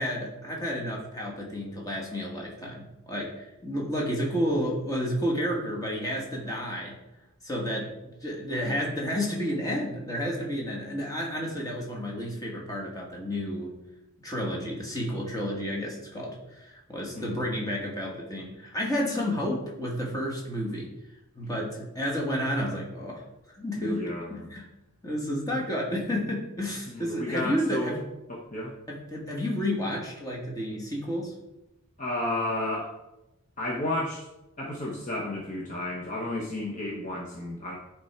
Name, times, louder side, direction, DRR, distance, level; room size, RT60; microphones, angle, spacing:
voice 1, 0.0-6.9 7.4-13.7 14.2-20.9 21.4-23.2 23.5-24.6 25.0-28.0 28.9-31.3, equal, 15° left, -2 dB, 1.5 m, -31 dB
voice 2, 23.8-24.5 26.9-28.0 28.3-28.7 32.0-32.9 33.6-34.3 34.6-37.8, left 1 dB, 35° left, -3 dB, 0.9 m, -32 dB
9.6 x 3.5 x 4.3 m, 0.93 s
head